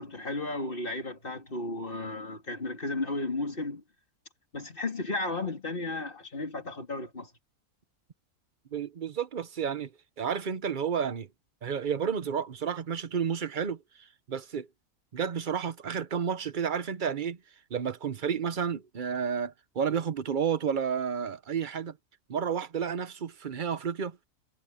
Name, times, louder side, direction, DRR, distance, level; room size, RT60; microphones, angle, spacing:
voice 1, 0.0-3.8 4.5-7.3, left 2 dB, 35° left, 3.2 m, -34 dB
voice 2, 8.7-9.9 10.2-11.3 11.6-13.8 14.3-14.7 15.1-17.4 17.7-22.0 22.3-24.2, right 7 dB, 40° right, 0.9 m, -31 dB
omnidirectional pair, 1.5 m